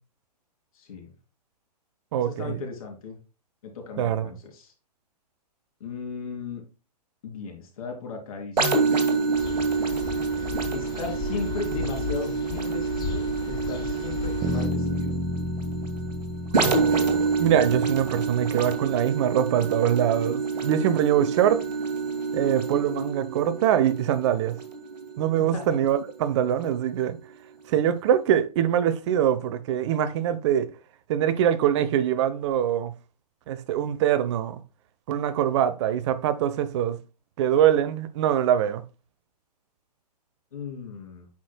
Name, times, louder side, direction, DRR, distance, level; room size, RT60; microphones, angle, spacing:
voice 1, 0.7-1.1 2.2-3.2 3.6-4.7 5.8-6.6 7.2-8.7 10.7-15.2 25.4-25.8 40.5-41.3, left 5 dB, 55° left, 3.4 m, -36 dB
voice 2, 2.1-2.6 4.0-4.3 16.6-21.6 22.3-24.6 25.2-27.2 27.7-30.7 31.1-32.9 33.5-34.6 35.1-37.0 37.4-38.8, right 10 dB, 45° right, 0.9 m, -23 dB
sound 1, 8.6-26.1 26.6-26.8, right 4 dB, 80° right, 2.1 m, -28 dB
sound 2, 9.3-14.7, left 6 dB, 20° left, 1.0 m, -35 dB
sound 3, 14.4-18.4, left 1 dB, 15° right, 1.1 m, -31 dB
8.5 x 6.3 x 2.2 m
hypercardioid pair, 125°, 21 cm